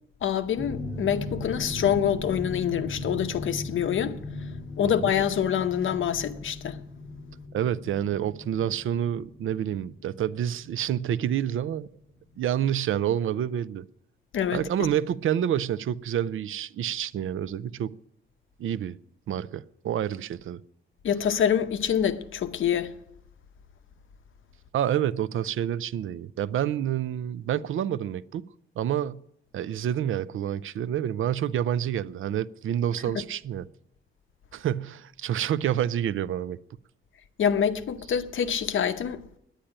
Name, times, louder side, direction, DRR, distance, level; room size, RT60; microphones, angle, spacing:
voice 1, 0.2-4.2 4.8-6.8 14.3-14.6 21.0-22.9 37.4-39.2, left 8 dB, 75° left, 0.8 m, -26 dB
sound 1, 0.6-11.3 11.6-11.9 12.3-12.4, left 2 dB, 35° left, 3.4 m, -38 dB
voice 2, 7.5-11.9 12.4-13.8 14.5-18.0 18.6-19.0 19.3-20.6 24.7-28.4 28.8-29.2 29.5-33.7 34.5-36.6, right 10 dB, 80° right, 0.5 m, -28 dB
10.0 x 9.9 x 8.8 m
wide cardioid pair, 170°, 20 cm